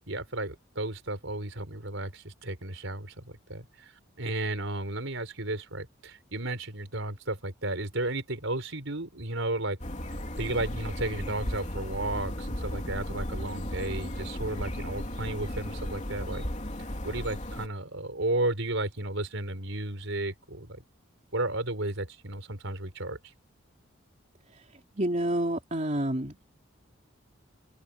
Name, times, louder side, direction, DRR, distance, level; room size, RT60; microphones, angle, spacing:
voice 1, 0.1-9.8 10.4-16.5 17.0-20.8 21.3-23.2, right 2 dB, 65° right, 4.9 m, -33 dB
sound 1, 9.8-17.7, left 1 dB, 35° left, 3.2 m, -35 dB
voice 2, 25.0-26.4, right 1 dB, 35° right, 3.3 m, -28 dB
open air
head